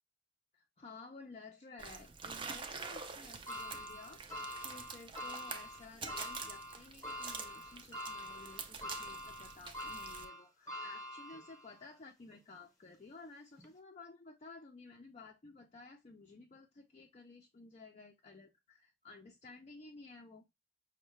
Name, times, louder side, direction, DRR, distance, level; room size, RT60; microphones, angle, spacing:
voice 1, 0.5-20.4, left 3 dB, 40° left, 0.4 m, -54 dB
sound 1, 1.8-10.2, right 5 dB, 30° right, 0.4 m, -47 dB
sound 2, 3.5-11.8 12.3-12.4 13.6-13.7, left 1 dB, 20° left, 0.9 m, -45 dB
5.3 x 2.1 x 3.0 m
head